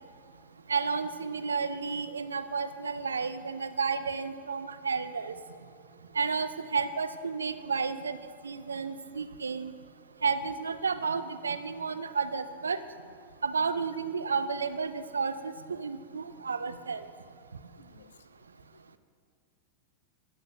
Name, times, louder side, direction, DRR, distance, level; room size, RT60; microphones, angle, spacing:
voice 1, 0.7-5.3 6.2-8.2 8.4-9.7 10.2-12.8 13.4-17.1, right 5 dB, 75° right, 13 dB, 0.4 m, -31 dB
voice 2, 17.8-18.1 18.7-19.0, left 8 dB, 65° left, 11 dB, 0.4 m, -59 dB
15.0 x 10.0 x 2.3 m, 2.4 s
figure-of-eight pair, 90°, 0 cm